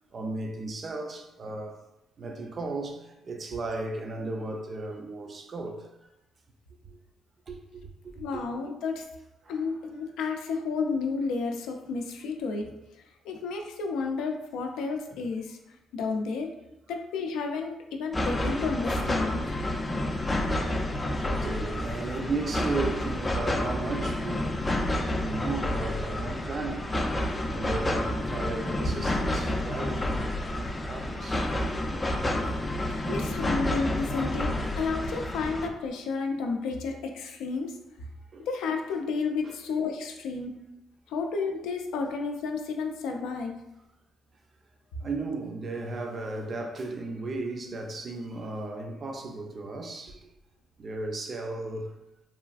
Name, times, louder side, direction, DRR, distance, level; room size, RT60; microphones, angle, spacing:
voice 1, 0.1-1.8 2.2-5.9 6.8-7.0 7.5-8.4 9.4-9.8 15.1-15.2 20.1-20.2 21.1-27.0 27.5-31.6 32.4-33.2 33.5-33.6 38.3-38.4 39.4-39.5 45.0-50.3 50.8-52.0, right 3 dB, 45° right, 0.4 m, -35 dB
voice 2, 8.2-9.0 9.5-12.7 13.2-15.6 15.9-16.5 16.9-19.6 32.9-34.5 34.7-37.7 38.5-40.5 41.1-43.5, left 4 dB, 90° left, 0.4 m, -31 dB
sound 1, 18.1-35.7, left 1 dB, 20° left, 0.4 m, -29 dB
3.0 x 2.4 x 2.4 m
cardioid pair, 90°, 0 cm